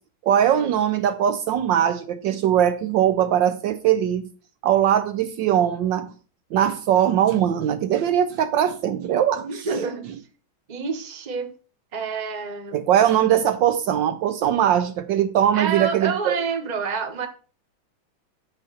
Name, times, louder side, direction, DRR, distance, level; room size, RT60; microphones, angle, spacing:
voice 1, 0.2-4.2 4.6-6.1 6.5-9.7 12.7-16.4, right 10 dB, 70° right, 1.2 m, -21 dB
voice 2, 9.4-10.1 10.7-11.5 11.9-12.9 15.5-17.3, right 5 dB, 25° right, 1.0 m, -28 dB
9.7 x 4.2 x 6.2 m
omnidirectional pair, 2.2 m